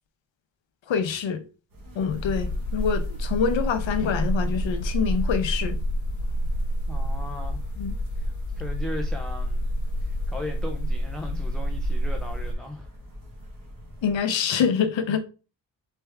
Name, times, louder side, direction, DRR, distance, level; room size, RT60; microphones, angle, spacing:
voice 1, 0.9-1.4 1.9-5.8 7.8-7.9 14.0-15.2, left 7 dB, 80° left, 0.8 m, -25 dB
sound 1, 1.7-14.2, equal, 45° right, 1.5 m, -45 dB
sound 2, 2.1-12.5, equal, 40° left, 0.9 m, -28 dB
voice 2, 6.9-7.7 8.2-9.7 10.0-12.9, left 1 dB, ahead, 0.4 m, -38 dB
4.4 x 3.4 x 3.4 m
wide cardioid pair, 150°, 45 cm